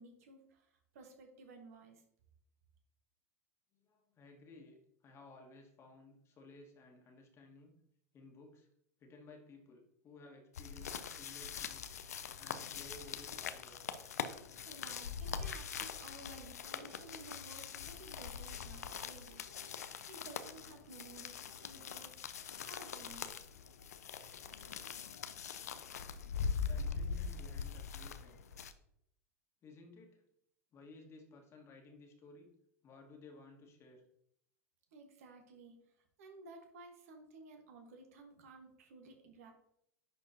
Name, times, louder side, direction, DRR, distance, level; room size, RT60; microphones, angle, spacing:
voice 1, 0.0-2.0 14.6-19.4 20.1-23.3 34.9-35.8 36.2-39.5, right 3 dB, 65° right, 4 dB, 1.5 m, -55 dB
voice 2, 3.7-7.8 8.1-8.7 9.0-11.9 12.4-14.0 26.4-28.4 29.6-30.2 30.7-32.5 32.8-34.1, left 2 dB, 30° left, 3 dB, 1.7 m, -57 dB
sound 1, 10.5-28.7, left 6 dB, 75° left, 0.5 m, -42 dB
10.5 x 4.3 x 2.9 m, 0.73 s
figure-of-eight pair, 90°, 9 cm